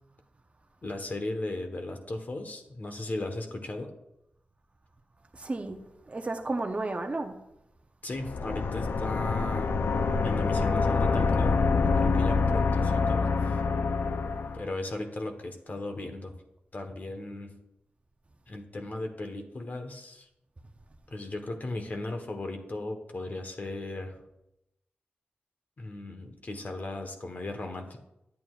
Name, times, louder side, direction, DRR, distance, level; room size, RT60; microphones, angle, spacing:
voice 1, 0.8-3.9 8.0-9.8 10.2-11.6 12.0-13.6 14.5-16.4 16.7-17.5 18.5-20.3 21.1-24.2 25.8-28.0, left 2 dB, 50° left, 1.2 m, -36 dB
voice 2, 5.3-7.4, right 2 dB, 35° right, 0.8 m, -33 dB
sound 1, 8.2-14.7, left 4 dB, 75° left, 0.5 m, -26 dB
11.0 x 8.4 x 2.4 m
cardioid pair, 65°, 4 cm